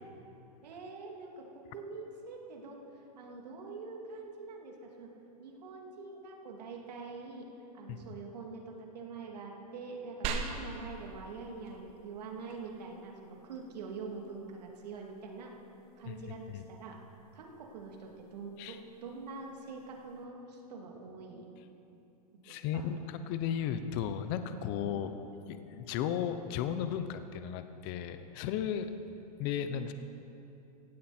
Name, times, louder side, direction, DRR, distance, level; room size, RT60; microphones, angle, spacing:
voice 1, 0.6-2.8 3.2-5.1 5.4-7.5 7.7-15.5 16.0-17.0 17.3-21.5 22.4-23.0 24.9-25.1 29.6-29.9, right 4 dB, 80° right, 0 dB, 2.8 m, -45 dB
sound 1, 10.2-20.2, right 5 dB, 30° right, 1.2 m, -46 dB
voice 2, 22.4-25.1 25.5-28.9 29.4-29.9, left 9 dB, 30° left, 10 dB, 0.7 m, -35 dB
17.5 x 16.0 x 4.4 m, 2.9 s
supercardioid pair, 165°, 21 cm